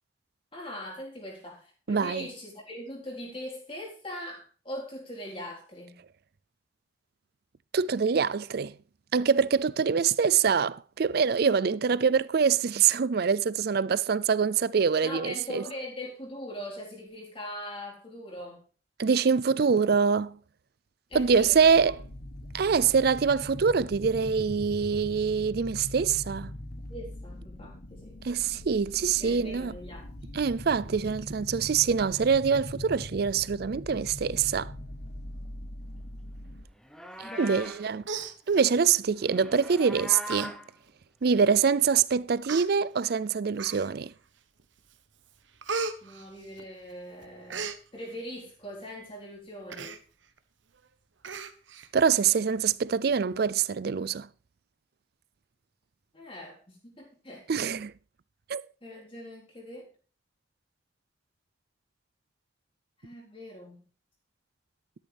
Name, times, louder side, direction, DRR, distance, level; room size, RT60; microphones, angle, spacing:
voice 1, 0.5-6.0 15.0-18.6 21.1-21.6 26.9-28.2 29.0-30.1 37.2-37.7 46.0-47.6 47.9-50.0 56.1-57.6 58.8-59.9 63.0-63.8, left 1 dB, 30° left, 4.1 m, -41 dB
voice 2, 1.9-2.3 7.7-8.7 9.1-15.6 19.0-20.4 21.1-22.0 22.5-26.5 28.2-29.7 30.3-34.7 37.4-38.0 38.5-40.5 41.2-44.1 51.9-54.3 57.5-57.9 58.5-58.6, right 6 dB, 55° right, 0.4 m, -25 dB
sound 1, 21.1-36.7, left 1 dB, 50° left, 1.1 m, -42 dB
Livestock farm animals working animals, 36.7-37.9 39.2-40.7, equal, 5° left, 0.9 m, -40 dB
Human voice, 37.6-37.8 38.0-38.9 39.7-39.9 40.3-40.5 40.9-41.0 41.8-41.9 42.4-42.7 43.6-44.1 44.6-45.0 45.2-46.9 47.2-47.8 49.7-50.0 50.4-50.5 50.7-50.9 51.2-51.9 52.3-52.4, right 4 dB, 85° right, 1.1 m, -36 dB
13.0 x 10.5 x 3.4 m
head